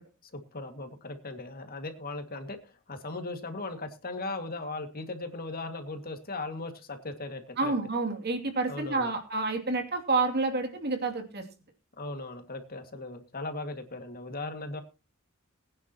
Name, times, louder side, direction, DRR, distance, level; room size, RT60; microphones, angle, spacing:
voice 1, 0.2-7.7 8.7-9.1 12.0-14.8, left 2 dB, 45° left, 6 dB, 2.2 m, -38 dB
voice 2, 7.6-11.4, right 3 dB, 50° right, 5 dB, 2.8 m, -29 dB
21.5 x 9.8 x 3.0 m, 0.31 s
head